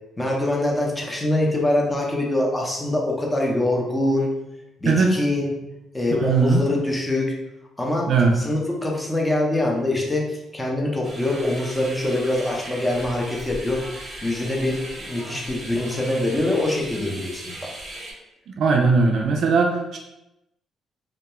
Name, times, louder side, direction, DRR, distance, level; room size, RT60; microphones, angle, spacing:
voice 1, 0.2-4.3 4.8-5.5 5.9-7.3 7.8-8.1 8.3-17.5, left 1 dB, 10° left, -2 dB, 0.6 m, -24 dB
voice 2, 4.9-5.2 6.2-6.6 8.1-8.3 18.5-20.0, right 4 dB, 70° right, 1 dB, 0.3 m, -19 dB
sound 1, 11.0-18.1, right 1 dB, 25° right, 0.9 m, -37 dB
2.3 x 2.2 x 2.9 m, 0.91 s
cardioid pair, 90°, 0 cm